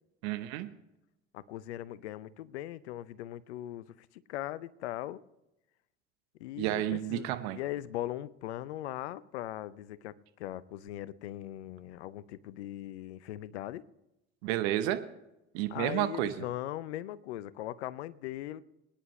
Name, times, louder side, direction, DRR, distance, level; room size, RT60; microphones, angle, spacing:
voice 1, 0.2-0.7 6.6-7.6 14.4-15.0 15.5-16.5, right 13 dB, 75° right, 1.0 m, -31 dB
voice 2, 1.3-3.9 4.3-5.2 6.4-13.8 15.7-18.6, left 13 dB, 85° left, 0.7 m, -39 dB
23.5 x 10.0 x 3.1 m
hypercardioid pair, 65°, 33 cm